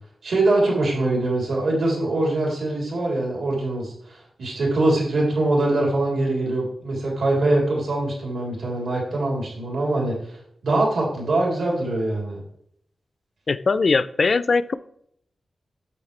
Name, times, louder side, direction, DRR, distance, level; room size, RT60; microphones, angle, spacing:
voice 1, 0.2-10.4 10.6-12.4, right 2 dB, 85° right, -2 dB, 3.4 m, -23 dB
voice 2, 13.5-14.8, left 4 dB, 45° left, 16 dB, 0.4 m, -20 dB
8.6 x 8.0 x 3.3 m, 0.69 s
wide cardioid pair, 155°, 0 cm